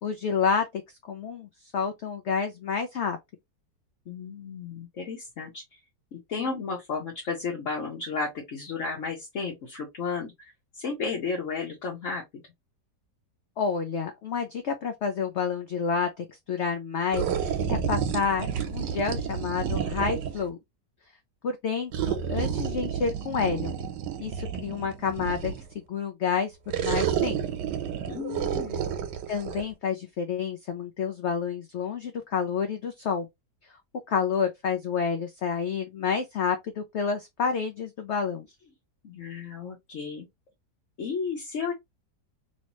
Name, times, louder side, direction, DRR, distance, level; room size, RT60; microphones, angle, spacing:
voice 1, 0.0-3.2 13.6-20.6 21.4-23.7 24.2-27.4 29.3-33.3 34.1-38.5, left 6 dB, 75° left, 0.6 m, -29 dB
voice 2, 4.1-5.6 6.1-12.2 28.1-29.1 39.0-40.3 41.0-41.7, left 4 dB, 55° left, 1.2 m, -33 dB
sound 1, 17.1-20.5 21.9-25.7 26.7-29.6, right 8 dB, 85° right, 1.4 m, -30 dB
3.1 x 2.8 x 2.9 m
omnidirectional pair, 1.8 m